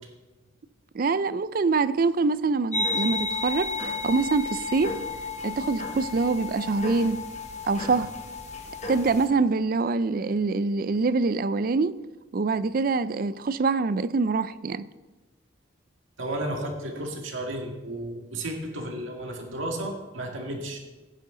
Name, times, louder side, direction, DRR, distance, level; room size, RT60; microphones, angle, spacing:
voice 1, 0.9-5.0 5.4-7.2 7.6-8.1 8.9-12.0 12.3-14.9, right 4 dB, 45° right, 0.4 m, -25 dB
sound 1, 2.7-9.3, left 3 dB, 35° left, 1.4 m, -32 dB
voice 2, 16.2-20.8, right 1 dB, 85° right, 1.9 m, -33 dB
16.5 x 9.4 x 3.8 m
head